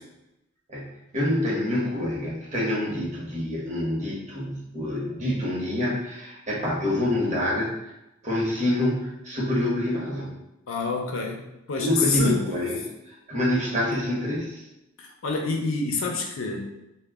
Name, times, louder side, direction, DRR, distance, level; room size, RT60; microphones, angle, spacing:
voice 1, 0.7-7.7 8.2-10.4 11.8-14.6, left 1 dB, 35° right, -5 dB, 0.8 m, -27 dB
voice 2, 10.7-12.4 13.7-13.8 15.0-16.6, left 4 dB, 80° left, 1 dB, 0.5 m, -27 dB
2.1 x 2.1 x 3.4 m, 0.91 s
head